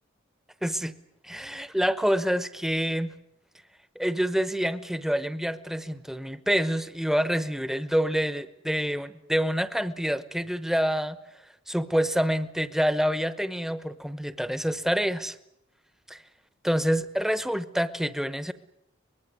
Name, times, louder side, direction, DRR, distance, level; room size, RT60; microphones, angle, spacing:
voice 1, 0.6-0.9 1.2-3.1 4.0-11.2 11.7-15.4 16.1-16.2 16.6-18.5, equal, ahead, 13 dB, 0.9 m, -27 dB
24.0 x 20.5 x 9.6 m, 0.80 s
head